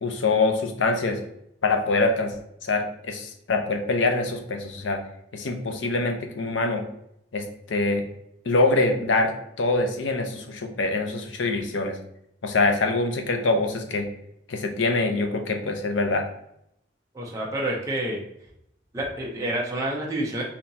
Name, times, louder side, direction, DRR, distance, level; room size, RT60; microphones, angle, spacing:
voice 1, 0.0-1.2 1.6-2.3 2.6-5.0 5.3-6.8 7.3-8.0 8.5-12.0 12.4-14.1 14.5-16.3, left 3 dB, 85° left, 5 dB, 0.6 m, -24 dB
voice 2, 17.1-18.2 18.9-20.4, right 1 dB, 15° right, -4 dB, 0.6 m, -28 dB
4.0 x 2.8 x 2.7 m, 0.77 s
head